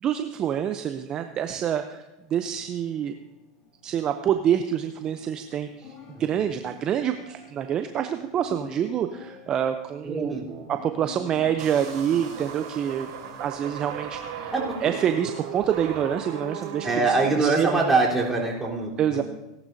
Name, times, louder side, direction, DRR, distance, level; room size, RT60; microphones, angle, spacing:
voice 1, 0.0-2.0 2.3-3.1 3.8-5.9 6.2-13.1 13.4-14.5 14.8-17.8 19.0-19.2, right 9 dB, 35° right, 8 dB, 0.7 m, -27 dB
sound 1, 2.2-16.9, left 5 dB, 40° left, 3.2 m, -49 dB
voice 2, 6.1-6.6 10.0-10.5 14.5-14.8 16.8-19.2, right 3 dB, 10° right, -5 dB, 3.8 m, -24 dB
sound 2, 11.6-17.3, right 7 dB, 70° right, 3.6 m, -37 dB
18.0 x 11.5 x 2.7 m, 0.98 s
hypercardioid pair, 105°, 2 cm